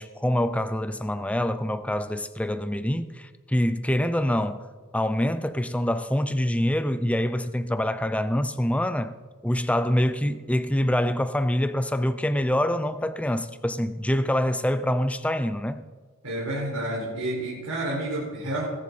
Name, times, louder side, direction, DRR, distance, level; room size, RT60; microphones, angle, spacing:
voice 1, 0.0-4.7 4.9-9.1 9.4-15.8, left 1 dB, 5° left, 0.6 m, -25 dB
voice 2, 16.2-18.7, right 1 dB, 85° right, 5.1 m, -29 dB
21.0 x 10.5 x 4.2 m
head